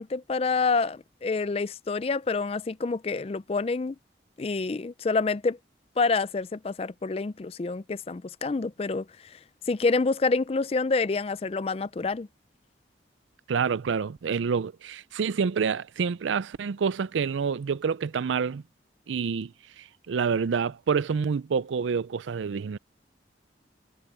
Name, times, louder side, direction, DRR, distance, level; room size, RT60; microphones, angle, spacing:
voice 1, 0.0-4.0 4.4-5.6 6.0-9.4 9.7-12.3, left 4 dB, 30° left, 0.4 m, -27 dB
voice 2, 13.5-18.6 19.1-19.5 19.8-22.8, right 6 dB, 90° right, 0.4 m, -27 dB
head